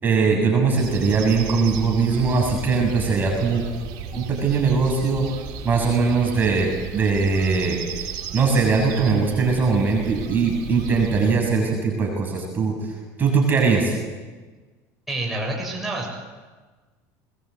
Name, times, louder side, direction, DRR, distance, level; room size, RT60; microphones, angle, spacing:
voice 1, 0.0-3.6 4.1-5.3 5.6-12.7 13.2-13.9, right 4 dB, 25° right, 0 dB, 7.1 m, -21 dB
sound 1, 0.8-11.3, right 7 dB, 60° right, 4.7 m, -35 dB
voice 2, 15.1-16.2, right 2 dB, 5° right, -3 dB, 7.4 m, -28 dB
22.5 x 21.5 x 8.3 m, 1.3 s
supercardioid pair, 135°, 8 cm